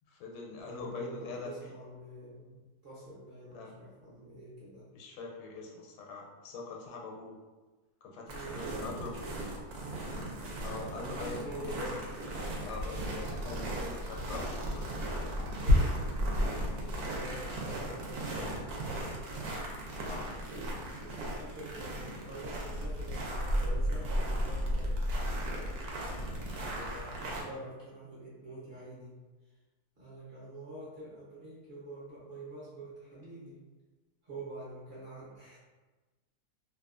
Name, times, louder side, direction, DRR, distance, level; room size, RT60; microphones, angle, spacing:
voice 1, 0.1-1.5 3.5-3.7 4.9-7.3 8.0-9.2 10.6-11.9 12.6-14.9 20.0-20.3 26.2-26.5, left 4 dB, 85° left, -1 dB, 1.2 m, -43 dB
voice 2, 0.6-4.8 8.2-9.3 10.9-12.0 15.4-15.9 16.9-18.8 20.4-20.7 21.0-25.0 26.6-29.2 30.0-33.6 34.2-35.6, right 1 dB, 50° right, -8 dB, 0.8 m, -46 dB
sound 1, 8.3-27.4, equal, 75° right, 1.1 m, -34 dB
2.8 x 2.2 x 2.4 m, 1.2 s
omnidirectional pair, 1.7 m